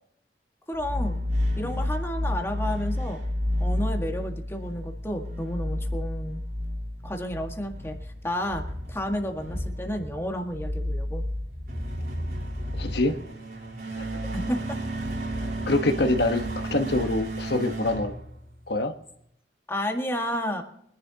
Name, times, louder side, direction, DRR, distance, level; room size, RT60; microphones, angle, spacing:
voice 1, 0.7-1.2 1.6-3.2 3.6-6.4 7.0-8.6 8.9-11.2 14.3-14.8 19.7-20.6, equal, 15° left, 3 dB, 1.7 m, -31 dB
sound 1, 0.7-18.9, equal, 60° right, 3.8 m, -31 dB
voice 2, 12.7-13.1 14.0-14.1 15.7-18.1 18.7-18.9, left 2 dB, 70° left, 6 dB, 1.2 m, -25 dB
24.0 x 11.0 x 2.9 m, 0.70 s
head